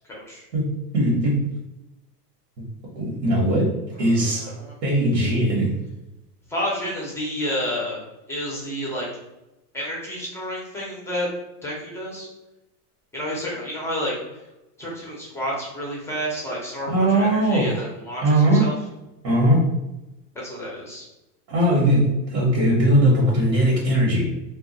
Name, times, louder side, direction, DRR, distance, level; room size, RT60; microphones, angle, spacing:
voice 1, 0.1-0.5 3.9-4.8 6.5-8.0 8.3-9.1 9.7-11.3 11.6-12.3 13.1-14.4 14.8-18.7 20.3-21.1, equal, 5° left, -4 dB, 0.4 m, -30 dB
voice 2, 0.9-1.5 2.9-4.5 4.8-5.7 16.8-17.8 18.2-18.7 19.2-19.7 21.5-24.2, right 1 dB, 90° right, -4 dB, 1.1 m, -19 dB
2.3 x 2.1 x 3.8 m, 0.97 s
supercardioid pair, 125°, 49 cm